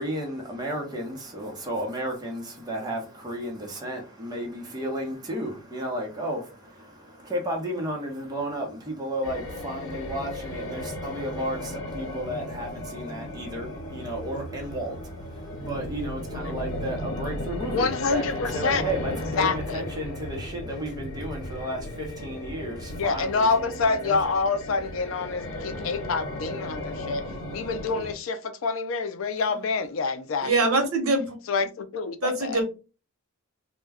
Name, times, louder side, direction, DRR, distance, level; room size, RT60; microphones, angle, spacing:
voice 1, 0.0-24.3, right 1 dB, 20° right, 0.7 m, -33 dB
sound 1, 9.2-28.1, left 1 dB, 90° left, 0.7 m, -35 dB
voice 2, 17.6-18.8 19.3-19.9 22.9-27.2 27.5-30.8 31.5-32.6, left 4 dB, 70° left, 0.4 m, -27 dB
voice 3, 30.4-31.2 32.2-32.7, right 2 dB, 85° right, 0.8 m, -23 dB
2.2 x 2.1 x 3.4 m
head